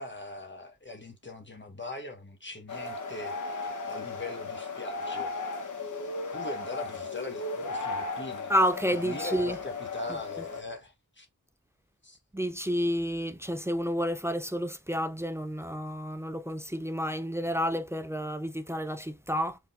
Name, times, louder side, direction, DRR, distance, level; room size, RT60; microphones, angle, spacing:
voice 1, 0.0-5.4 6.3-8.5 8.9-11.3 12.0-12.2, left 2 dB, 30° left, 1.2 m, -41 dB
sound 1, 2.7-10.6, left 3 dB, 55° left, 1.0 m, -36 dB
voice 2, 8.5-9.6 12.3-19.6, equal, 5° right, 0.4 m, -30 dB
4.7 x 3.6 x 2.5 m
wide cardioid pair, 85°, 38 cm